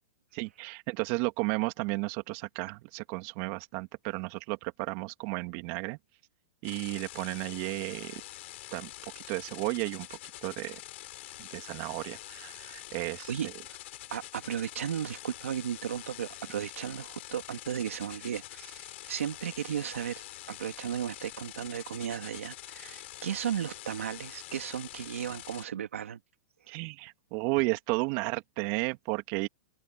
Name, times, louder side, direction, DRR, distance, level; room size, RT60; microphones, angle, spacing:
voice 1, 0.3-6.0 6.6-8.2 8.7-8.9 9.1-10.1 10.4-10.8 11.4-13.3 26.7-29.5, right 26 dB, 50° right, 2.8 m, -33 dB
sound 1, 6.6-25.6, left 16 dB, 65° left, 4.4 m, -46 dB
voice 2, 13.3-13.8 14.1-26.2 26.7-26.8, right 9 dB, 85° right, 2.9 m, -35 dB
open air
hypercardioid pair, 125°, 7 cm